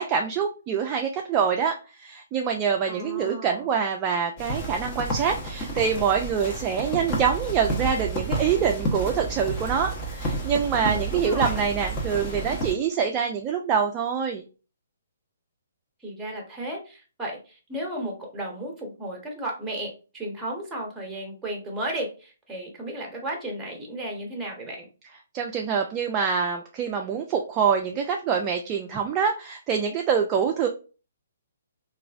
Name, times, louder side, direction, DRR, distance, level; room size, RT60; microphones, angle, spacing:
voice 1, 0.0-14.4 25.3-30.7, right 7 dB, 25° right, 3 dB, 0.3 m, -25 dB
voice 2, 2.9-3.7 10.8-11.6 16.0-24.9, right 1 dB, 10° right, 0 dB, 1.0 m, -34 dB
sound 1, 4.4-12.7, right 2 dB, 30° left, 0.8 m, -30 dB
3.0 x 2.4 x 2.4 m, 0.34 s
figure-of-eight pair, 135°, 0 cm